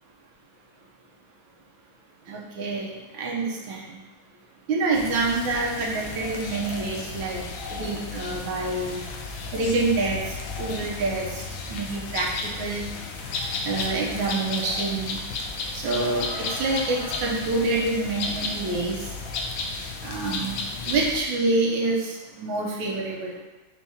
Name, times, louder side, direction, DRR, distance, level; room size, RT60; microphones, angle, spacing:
voice 1, 2.3-4.0 4.7-7.4 7.7-9.0 9.5-11.4 11.7-12.3 12.6-12.9 13.6-15.2 15.7-19.1 20.0-23.4, right 3 dB, 90° right, -3 dB, 1.5 m, -27 dB
sound 1, 4.9-21.2, left 3 dB, 80° left, 1.3 m, -33 dB
4.7 x 3.6 x 2.7 m, 1.1 s
omnidirectional pair, 2.1 m